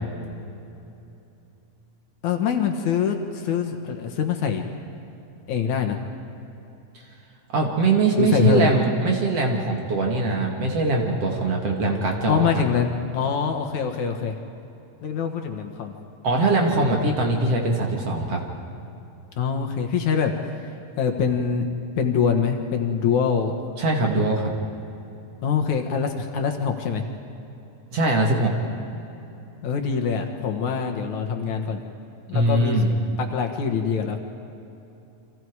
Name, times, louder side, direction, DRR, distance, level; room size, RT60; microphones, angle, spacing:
voice 1, 2.2-4.6 5.5-6.0 8.2-8.7 12.3-14.3 15.0-15.9 19.4-20.3 21.0-21.7 22.0-23.5 25.4-27.0 29.6-31.8 32.3-34.2, left 6 dB, 65° left, 4 dB, 2.6 m, -24 dB
voice 2, 7.5-12.5 16.2-18.4 23.8-24.5 27.9-28.5 32.3-32.9, right 2 dB, 50° right, 1 dB, 3.0 m, -22 dB
30.0 x 25.0 x 4.8 m, 2.9 s
omnidirectional pair, 3.9 m